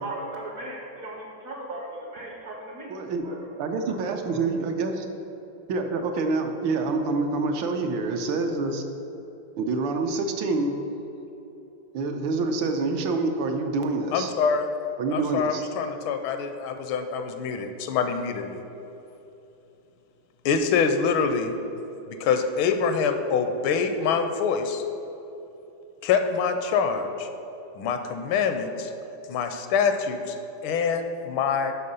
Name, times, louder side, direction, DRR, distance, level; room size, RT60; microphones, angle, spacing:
voice 1, 0.0-2.9 3.2-3.5 3.9-4.0 4.2-4.4, right 2 dB, 60° right, 0 dB, 1.0 m, -37 dB
voice 2, 2.9-3.2 3.6-5.1 5.7-8.8 9.6-10.8 11.9-14.3 15.0-15.6, right 3 dB, 75° right, 5 dB, 1.3 m, -26 dB
voice 3, 14.1-14.7 15.1-18.6 20.4-21.5 22.1-24.8 26.0-27.3 27.8-28.9 29.3-31.7, left 6 dB, 80° left, 7 dB, 1.4 m, -25 dB
6.6 x 6.1 x 5.4 m, 3.0 s
omnidirectional pair, 2.2 m